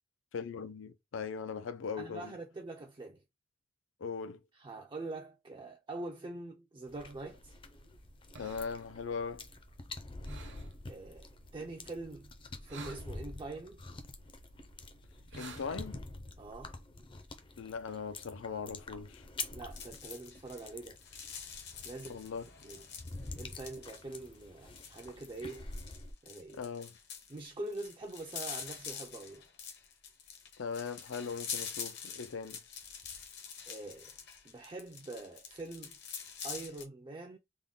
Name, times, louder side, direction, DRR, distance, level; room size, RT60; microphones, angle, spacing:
voice 1, 0.3-2.3 4.0-4.4 8.4-9.4 15.4-16.0 17.6-19.2 22.1-22.4 26.5-26.9 30.6-32.6, left 5 dB, 80° left, 0.5 m, -39 dB
voice 2, 2.0-3.2 4.5-7.6 10.9-12.3 12.6-13.8 16.4-16.8 19.5-21.0 21.8-22.2 22.6-22.8 23.4-25.7 26.2-26.6 27.3-29.4 33.7-34.1 34.4-36.0 36.4-37.4, right 2 dB, 25° right, 0.4 m, -44 dB
sound 1, 6.9-26.1, left 3 dB, 25° left, 0.5 m, -47 dB
sound 2, 6.9-16.0, right 3 dB, 65° right, 0.9 m, -54 dB
sound 3, 19.7-36.8, left 7 dB, 60° left, 0.9 m, -46 dB
3.6 x 2.1 x 3.7 m
head